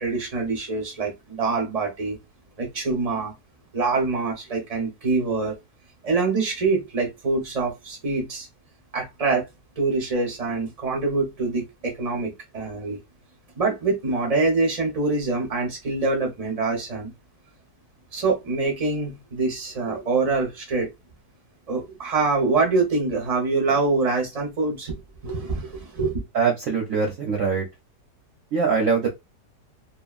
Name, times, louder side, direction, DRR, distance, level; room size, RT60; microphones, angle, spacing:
voice 1, 0.0-2.2 2.6-3.3 3.7-5.5 6.0-8.5 8.9-9.5 9.8-13.0 13.6-17.1 18.1-20.9 21.7-26.2, right 3 dB, 35° right, 0.6 m, -25 dB
voice 2, 26.3-27.7 28.5-29.1, right 5 dB, 60° right, 0.9 m, -22 dB
2.8 x 2.4 x 2.3 m
omnidirectional pair, 1.9 m